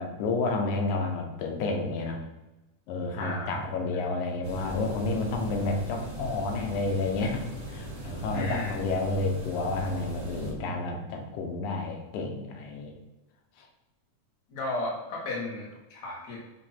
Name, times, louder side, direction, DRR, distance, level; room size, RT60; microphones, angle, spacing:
voice 1, 0.0-2.2 2.9-12.9, left 3 dB, 85° left, 3 dB, 2.3 m, -30 dB
voice 2, 3.2-3.5 3.9-4.0 8.3-8.8 14.5-16.4, left 2 dB, 40° left, -3 dB, 1.7 m, -34 dB
sound 1, 4.4-10.5, right 1 dB, 85° right, 0.4 m, -39 dB
8.0 x 2.9 x 4.3 m, 1.0 s
omnidirectional pair, 3.4 m